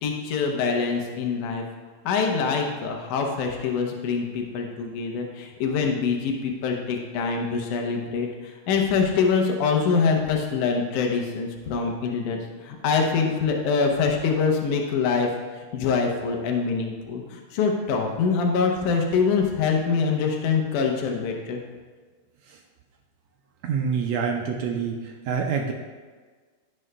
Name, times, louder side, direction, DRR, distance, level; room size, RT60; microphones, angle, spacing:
voice 1, 0.0-1.6 2.1-21.6, left 5 dB, 80° left, 2 dB, 2.4 m, -24 dB
voice 2, 23.6-25.0 25.3-25.7, right 6 dB, 80° right, 3 dB, 1.8 m, -26 dB
16.0 x 6.2 x 2.2 m, 1.4 s
omnidirectional pair, 3.5 m